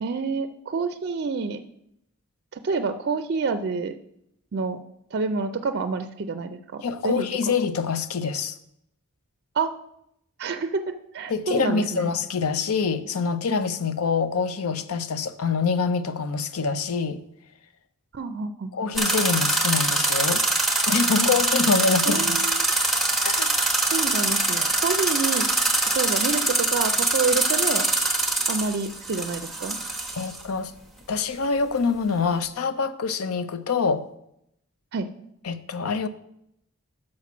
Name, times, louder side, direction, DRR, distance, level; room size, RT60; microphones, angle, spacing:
voice 1, 0.0-1.6 2.5-3.9 4.5-4.8 5.1-7.5 9.5-9.7 10.4-12.1 18.1-18.7 22.1-22.7 23.9-25.5 25.9-27.9 28.5-29.8 34.9-35.1, right 4 dB, 50° right, 0.4 m, -28 dB
voice 2, 6.8-8.6 11.3-17.2 18.7-20.4 20.9-22.4 23.2-23.5 30.1-30.7 31.1-34.0 35.4-36.1, left 5 dB, 80° left, 0.5 m, -25 dB
sound 1, 19.0-30.4, right 2 dB, ahead, 0.9 m, -23 dB
6.3 x 5.9 x 5.9 m
head